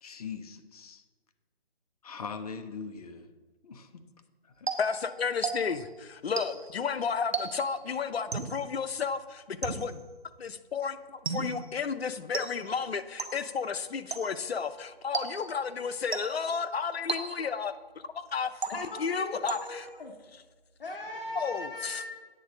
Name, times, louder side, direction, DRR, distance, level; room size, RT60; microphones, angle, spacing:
voice 1, 0.0-1.0 2.0-3.3 3.6-4.0 4.6-4.7, left 5 dB, 40° left, 8 dB, 0.7 m, -41 dB
sound 1, 4.7-5.9 6.4-6.8 7.3-7.8 8.3-8.7 9.6-10.1 11.3-11.7 12.3-12.8 13.2-13.6 14.1-14.5 15.1-15.6 16.1-16.6 17.1-17.7 18.6-19.1 19.5-20.0, right 5 dB, 85° right, 1.0 m, -36 dB
voice 2, 4.8-10.0 10.4-17.7 18.1-19.9 21.3-22.0, left 6 dB, 80° left, 11 dB, 0.7 m, -32 dB
voice 3, 18.7-20.1 20.8-22.1, left 1 dB, 60° left, 1 dB, 1.1 m, -39 dB
8.6 x 3.9 x 6.3 m, 1.3 s
figure-of-eight pair, 150°, 31 cm